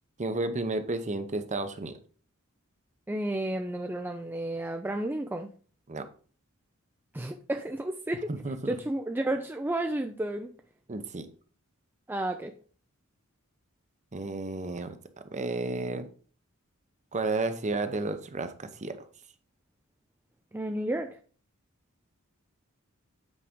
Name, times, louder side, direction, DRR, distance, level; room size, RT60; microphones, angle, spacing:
voice 1, 0.2-2.0 5.9-6.0 8.3-8.8 10.9-11.3 14.1-15.0 15.3-16.1 17.1-19.1, right 2 dB, 35° right, 9 dB, 0.8 m, -32 dB
voice 2, 3.1-5.5 7.1-8.3 8.7-10.5 12.1-12.5 20.5-21.2, right 1 dB, 10° right, 5 dB, 0.4 m, -32 dB
8.3 x 4.9 x 3.7 m, 0.42 s
head